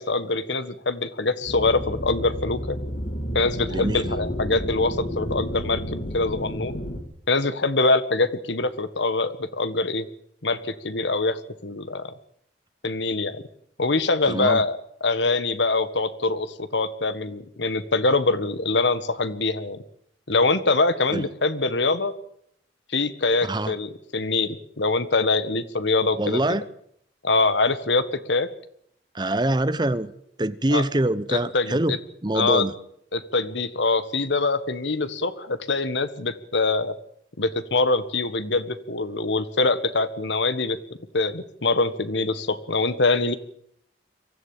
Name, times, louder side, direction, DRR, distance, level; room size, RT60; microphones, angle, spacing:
voice 1, 0.0-2.8 3.3-6.8 7.3-10.0 10.4-12.1 12.8-13.4 13.8-19.8 20.3-22.1 22.9-26.4 27.2-28.5 30.7-30.8 31.3-32.0 32.3-32.7 33.1-36.9 37.4-40.8 41.1-43.3, left 3 dB, 90° left, 1.7 m, -24 dB
sound 1, 1.5-7.0, equal, 50° left, 3.1 m, -31 dB
voice 2, 3.7-4.1 14.3-14.6 21.1-21.2 23.4-23.7 26.2-26.6 29.1-30.1 30.4-32.0 32.2-32.7, right 1 dB, 25° right, 0.9 m, -24 dB
24.0 x 15.0 x 8.9 m
head